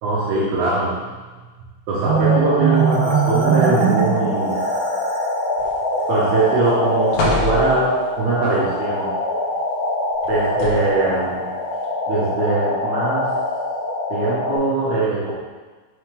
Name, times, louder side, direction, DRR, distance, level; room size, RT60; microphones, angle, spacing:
voice 1, 0.0-1.0 1.9-4.7 6.1-9.1 10.3-11.5 12.1-13.3 14.1-15.3, right 3 dB, 70° right, -8 dB, 2.6 m, -21 dB
sound 1, 2.0-14.6, left 2 dB, 50° left, 2.5 m, -24 dB
Marimba xylophone, 2.1-5.4, right 8 dB, 90° right, 3.3 m, -21 dB
sound 2, 5.6-6.1 6.5-6.7 7.1-8.1 10.2-11.1 11.8-11.9, left 3 dB, 80° left, 2.0 m, -26 dB
6.4 x 4.9 x 3.3 m, 1.3 s
omnidirectional pair, 5.7 m